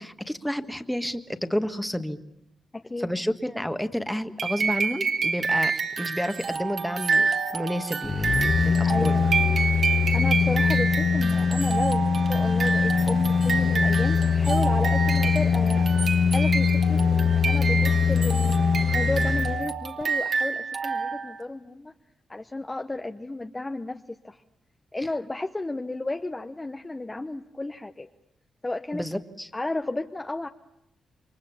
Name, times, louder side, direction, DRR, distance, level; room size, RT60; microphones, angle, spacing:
voice 1, 0.0-2.2 3.0-9.2 28.9-29.5, equal, 5° left, 9 dB, 1.5 m, -30 dB
voice 2, 2.7-3.1 8.8-9.3 10.1-15.9 16.3-18.6 18.9-21.9 22.3-24.4 24.9-28.1 28.6-29.0 29.5-30.5, left 2 dB, 20° left, 6 dB, 0.9 m, -33 dB
sound 1, 4.4-21.4, right 5 dB, 55° right, 2.5 m, -28 dB
sound 2, 8.0-19.6 20.0-20.1, left 6 dB, 45° left, 1.7 m, -22 dB
28.5 x 23.5 x 7.2 m, 0.81 s
cardioid pair, 90°, 0 cm